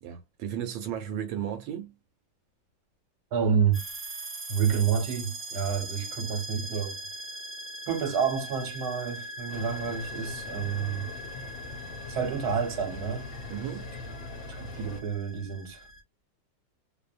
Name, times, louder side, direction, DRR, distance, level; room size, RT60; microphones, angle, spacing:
voice 1, 0.0-1.9 13.5-13.9, right 9 dB, 80° right, 1.4 m, -34 dB
voice 2, 3.3-3.8 4.5-7.0 7.9-11.1 12.1-13.3 14.5-15.9, right 7 dB, 60° right, 1.3 m, -29 dB
sound 1, 3.7-16.0, right 1 dB, 40° right, 0.8 m, -41 dB
sound 2, 9.5-15.0, left 3 dB, 75° left, 1.4 m, -41 dB
3.2 x 2.1 x 2.4 m
omnidirectional pair, 2.1 m